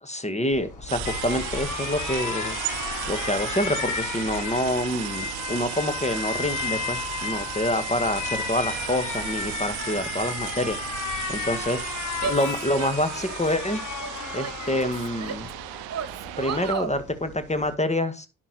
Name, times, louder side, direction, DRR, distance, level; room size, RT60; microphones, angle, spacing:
voice 1, 0.0-2.6 3.1-11.0 11.3-13.9 14.3-15.5 16.4-18.3, left 1 dB, 20° left, 10 dB, 1.8 m, -27 dB
Alarm, 0.5-17.7, left 7 dB, 55° left, 1.7 m, -34 dB
sound 1, 0.9-16.7, right 18 dB, 90° right, 0.6 m, -35 dB
Female speech woman speaking / Yell, 12.2-13.5 14.0-15.5 15.9-17.0, right 6 dB, 45° right, 1.5 m, -34 dB
11.0 x 4.5 x 6.2 m, 0.30 s
supercardioid pair, 45°, 35 cm